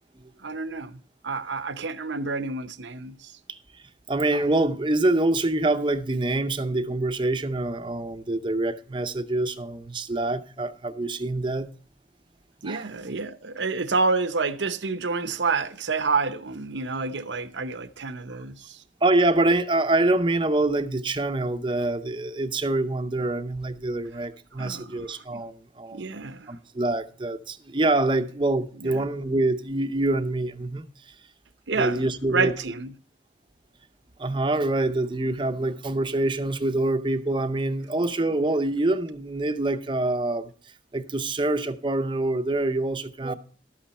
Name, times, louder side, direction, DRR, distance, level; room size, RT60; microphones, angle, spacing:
voice 1, 0.4-3.3 12.6-18.8 24.6-25.4 25.9-26.5 28.8-29.1 31.7-32.9, right 4 dB, 80° right, 0.8 m, -29 dB
voice 2, 3.5-3.8 4.1-11.7 12.7-12.8 19.0-26.1 26.5-30.8 31.8-32.5 34.2-40.5 40.9-43.3, right 2 dB, 25° right, 0.6 m, -25 dB
12.5 x 8.6 x 4.2 m
head